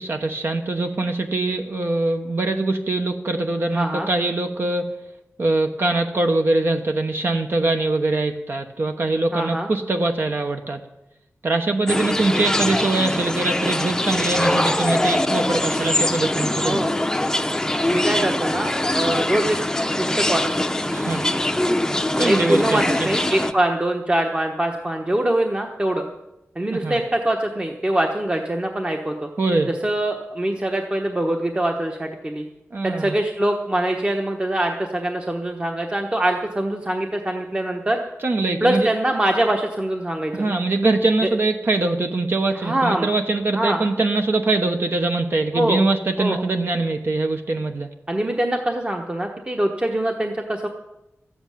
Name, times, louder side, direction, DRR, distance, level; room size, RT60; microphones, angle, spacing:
voice 1, 0.0-4.9 5.4-10.8 11.4-16.8 20.9-21.2 22.2-23.1 26.7-27.0 29.4-29.7 32.7-33.1 38.2-38.9 40.3-47.9, right 2 dB, 50° right, 5 dB, 1.0 m, -23 dB
voice 2, 3.7-4.1 9.3-9.7 16.6-17.0 17.9-19.6 20.0-20.5 22.2-26.1 26.6-29.3 29.7-32.4 32.8-38.0 38.6-40.6 42.5-43.1 43.5-43.8 45.5-45.8 46.2-46.4 48.1-50.7, right 1 dB, 20° right, 3 dB, 1.1 m, -23 dB
sound 1, 11.9-23.5, left 1 dB, 10° left, 0.7 m, -23 dB
14.0 x 7.9 x 9.2 m, 0.93 s
wide cardioid pair, 125°, 5 cm